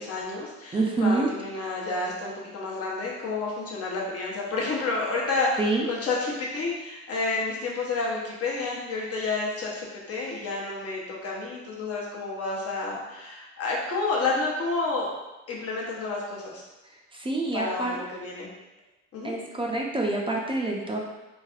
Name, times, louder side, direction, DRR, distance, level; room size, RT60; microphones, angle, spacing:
voice 1, 0.0-15.1 15.5-16.6 17.5-18.5 19.1-19.3, left 3 dB, 50° left, -3 dB, 0.8 m, -30 dB
voice 2, 0.7-1.3 5.6-5.9 17.1-17.9 19.2-21.0, right 2 dB, 15° right, -1 dB, 0.4 m, -26 dB
3.2 x 2.4 x 2.3 m, 1.1 s
cardioid pair, 90°, 30 cm